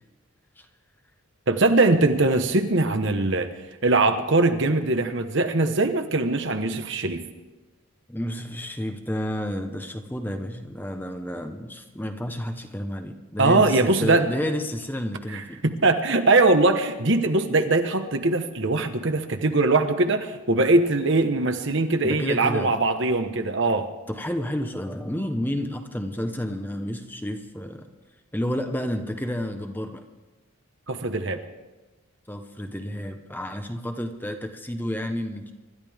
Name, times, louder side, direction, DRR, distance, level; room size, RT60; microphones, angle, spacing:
voice 1, 1.5-3.5 3.8-7.3 13.4-14.3 15.3-23.9 30.9-31.4, right 2 dB, 55° right, 6 dB, 1.1 m, -21 dB
voice 2, 8.1-15.6 22.0-22.7 24.1-27.8 28.3-30.0 32.3-35.5, equal, 10° left, 6 dB, 0.9 m, -30 dB
25.5 x 12.5 x 3.6 m, 1.2 s
head